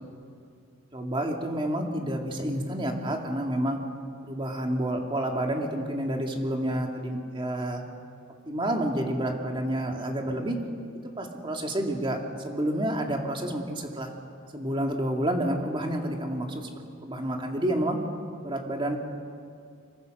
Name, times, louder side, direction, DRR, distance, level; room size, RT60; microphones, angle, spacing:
voice 1, 0.9-3.8 4.2-7.8 8.5-10.6 11.2-14.1 14.5-16.7 17.0-18.0 18.4-19.0, right 1 dB, 25° right, 2 dB, 2.4 m, -29 dB
25.5 x 23.0 x 6.7 m, 2.3 s
head